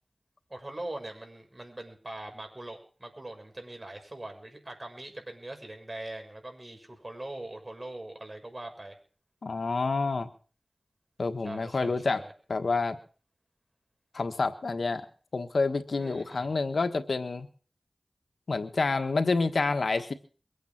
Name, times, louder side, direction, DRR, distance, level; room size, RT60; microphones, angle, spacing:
voice 1, 0.5-9.0 11.4-12.3 16.0-16.5, right 1 dB, 35° right, 4 dB, 6.6 m, -42 dB
voice 2, 9.4-10.3 11.2-12.2 12.5-13.0 14.1-15.1 15.3-17.5 18.5-20.1, left 3 dB, 80° left, 8 dB, 1.4 m, -28 dB
23.0 x 9.3 x 6.0 m, 0.40 s
wide cardioid pair, 45°, 0 cm